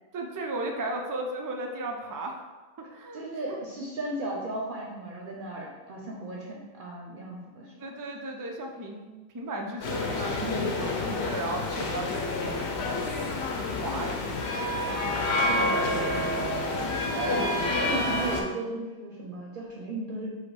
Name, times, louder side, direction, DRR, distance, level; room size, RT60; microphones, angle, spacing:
voice 1, 0.1-2.4 2.9-3.6 7.8-12.6 13.5-14.5 14.8-16.3 16.8-17.1, right 2 dB, 30° right, 2 dB, 0.3 m, -36 dB
voice 2, 3.1-7.7 10.4-11.2 15.4-16.5 17.0-20.4, right 2 dB, 60° right, -3 dB, 0.8 m, -36 dB
sound 1, 9.8-18.4, left 2 dB, 85° left, 0.9 m, -29 dB
5.0 x 2.2 x 4.6 m, 1.2 s
omnidirectional pair, 1.1 m